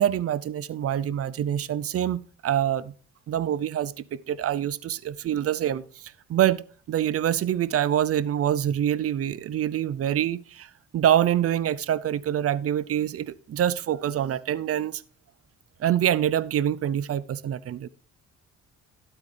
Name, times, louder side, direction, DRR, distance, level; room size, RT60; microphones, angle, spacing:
voice 1, 0.0-2.9 3.3-6.0 6.3-15.0 15.8-17.9, right 10 dB, 50° right, 0.6 m, -25 dB
12.0 x 8.6 x 3.3 m
cardioid pair, 90°, 30 cm